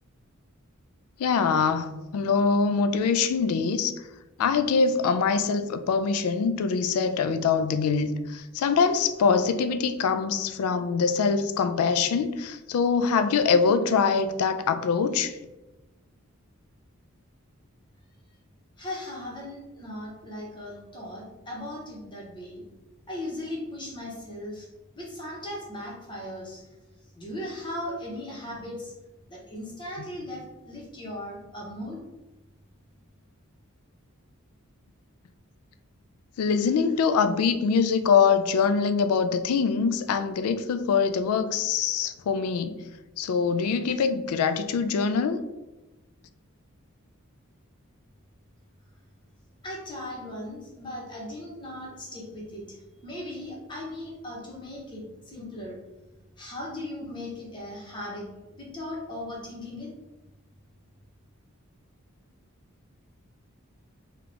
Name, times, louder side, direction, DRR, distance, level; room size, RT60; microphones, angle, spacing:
voice 1, 1.2-3.9 4.4-15.3 30.0-30.1 36.4-42.8 43.2-45.4, left 5 dB, 85° left, 11 dB, 0.3 m, -24 dB
voice 2, 18.8-22.6 23.1-24.7 25.0-26.6 27.2-28.9 29.3-32.0 49.6-52.8 53.0-55.8 56.4-58.3 58.6-59.9, left 1 dB, 20° left, -3 dB, 0.9 m, -38 dB
3.8 x 2.3 x 3.3 m, 1.1 s
head